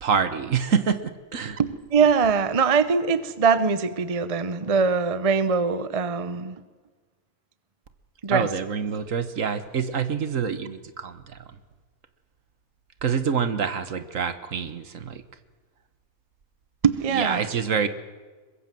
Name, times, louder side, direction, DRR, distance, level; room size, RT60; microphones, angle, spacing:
voice 1, 0.0-1.0 1.3-1.6 8.3-11.4 13.0-15.2 17.1-17.9, right 6 dB, 60° right, 12 dB, 1.6 m, -26 dB
voice 2, 1.6-6.6 8.2-8.5 16.8-17.5, right 5 dB, 30° right, 14 dB, 0.8 m, -22 dB
22.5 x 21.5 x 7.6 m, 1.4 s
omnidirectional pair, 1.5 m